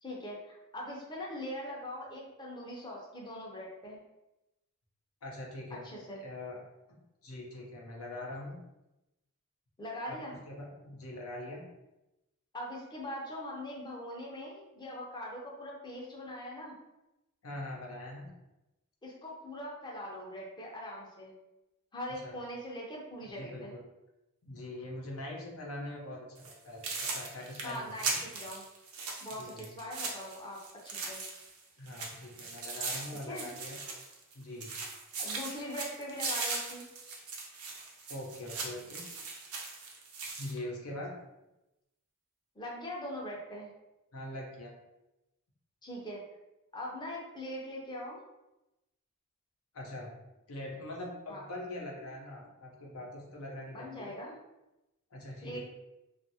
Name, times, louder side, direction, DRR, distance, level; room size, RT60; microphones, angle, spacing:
voice 1, 0.0-4.0 5.8-6.2 9.8-10.4 12.5-16.7 19.0-21.3 21.9-23.7 27.6-28.6 29.2-30.6 30.8-31.2 33.3-33.5 35.2-36.8 42.6-43.7 45.8-46.2 46.7-48.2 51.3-51.4 53.7-54.4 55.4-55.7, left 1 dB, 20° left, -3 dB, 0.6 m, -41 dB
voice 2, 5.2-5.9 6.2-6.6 7.2-8.6 10.1-11.6 17.4-18.3 22.2-22.3 23.3-23.8 24.4-26.8 27.1-28.2 29.4-29.7 31.8-33.8 34.3-34.7 38.1-39.0 40.4-41.1 44.1-44.7 49.7-50.1 50.5-54.1 55.1-55.7, left 1 dB, 75° left, -2 dB, 0.7 m, -42 dB
sound 1, 26.4-26.5 26.8-31.6 31.9-34.3 34.6-40.5, right 4 dB, 70° right, 0.6 m, -39 dB
2.7 x 2.4 x 2.7 m, 0.95 s
head